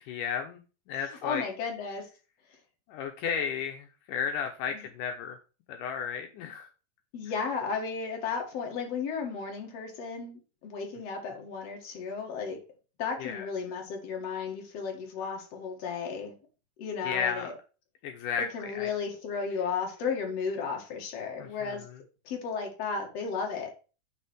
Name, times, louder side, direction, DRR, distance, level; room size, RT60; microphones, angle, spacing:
voice 1, 0.1-0.6 0.9-1.5 2.9-5.4 5.7-6.7 13.2-13.5 17.0-17.5 18.0-18.9 21.4-21.8, left 7 dB, 80° left, 2.4 m, -33 dB
voice 2, 1.0-2.1 4.7-4.8 7.1-12.6 13.0-16.4 16.8-17.5 18.4-21.8 22.2-23.7, left 5 dB, 50° left, 2.8 m, -34 dB
10.0 x 3.5 x 6.3 m
omnidirectional pair, 3.8 m